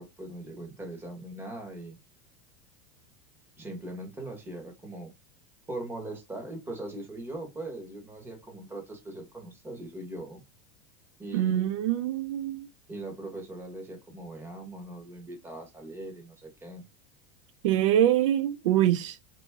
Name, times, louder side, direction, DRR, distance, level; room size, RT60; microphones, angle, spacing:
voice 1, 0.0-2.0 3.6-5.1 5.7-10.4 11.2-11.7 12.9-16.8, right 1 dB, 15° right, 1.5 m, -40 dB
voice 2, 11.3-12.7 17.6-19.2, right 12 dB, 80° right, 0.5 m, -24 dB
3.9 x 3.0 x 3.6 m
supercardioid pair, 145°, 16 cm